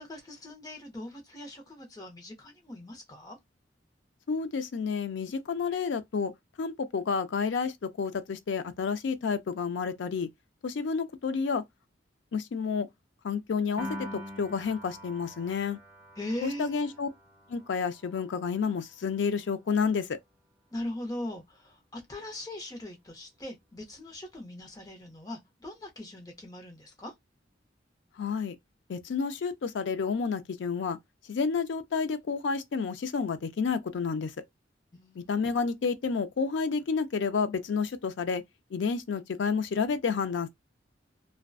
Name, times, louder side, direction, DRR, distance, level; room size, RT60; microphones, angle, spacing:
voice 1, 0.0-3.4 16.2-16.9 20.7-27.1 34.9-35.6, left 1 dB, 20° left, 0.6 m, -40 dB
voice 2, 4.3-6.3 6.6-10.3 10.6-11.6 12.3-12.9 13.2-15.8 16.4-17.1 17.5-20.2 28.2-28.6 28.9-31.0 31.3-34.3 35.2-38.4 38.7-40.5, left 5 dB, 70° left, 0.4 m, -30 dB
Piano, 13.8-20.2, equal, 20° right, 0.7 m, -46 dB
2.5 x 2.1 x 2.3 m
head